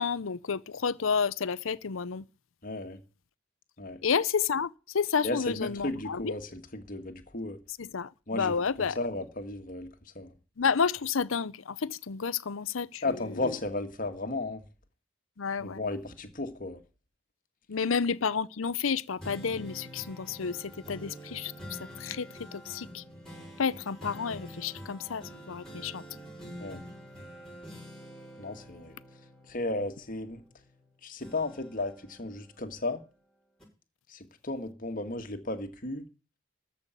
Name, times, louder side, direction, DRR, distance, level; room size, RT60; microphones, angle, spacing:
voice 1, 0.0-2.3 4.0-6.3 7.8-9.0 10.6-13.5 15.4-15.8 17.7-23.0 23.6-26.0, left 6 dB, 85° left, 0.7 m, -31 dB
voice 2, 2.6-3.0 3.8-4.0 5.2-7.6 8.3-10.3 13.0-14.7 15.6-16.8 26.6-26.8 28.4-29.0 29.5-30.4 31.0-33.0 34.1-36.1, left 2 dB, 45° left, 1.9 m, -35 dB
sound 1, 19.2-30.8 31.2-33.1 33.6-33.7, equal, 5° left, 5.8 m, -47 dB
13.5 x 5.8 x 8.3 m
head